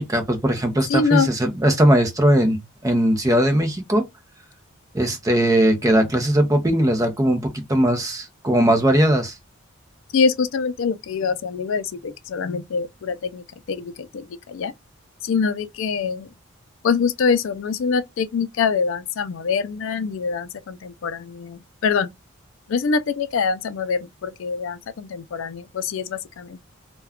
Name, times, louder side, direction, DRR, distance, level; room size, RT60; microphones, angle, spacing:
voice 1, 0.0-4.1 4.9-9.4, right 1 dB, 15° right, 0.5 m, -19 dB
voice 2, 0.9-1.3 10.1-14.7 15.2-16.3 16.8-22.1 22.7-26.6, left 5 dB, 70° left, 0.4 m, -24 dB
2.3 x 2.2 x 3.4 m
head